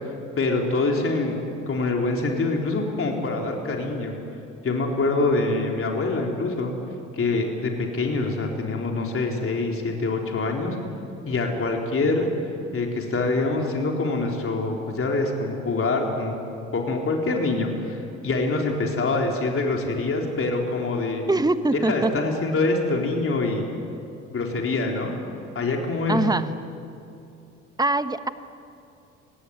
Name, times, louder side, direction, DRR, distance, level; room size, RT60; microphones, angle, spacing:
voice 1, 0.4-1.4 1.7-4.2 4.6-6.7 7.1-10.8 11.2-12.3 12.7-16.3 16.7-21.2 21.7-23.6 24.3-25.1 25.5-26.2, left 3 dB, 40° left, 1 dB, 4.0 m, -25 dB
voice 2, 21.3-22.1 26.1-26.5 27.8-28.3, right 2 dB, 10° right, 11 dB, 1.3 m, -22 dB
24.0 x 17.5 x 9.5 m, 2.6 s
hypercardioid pair, 60°, 33 cm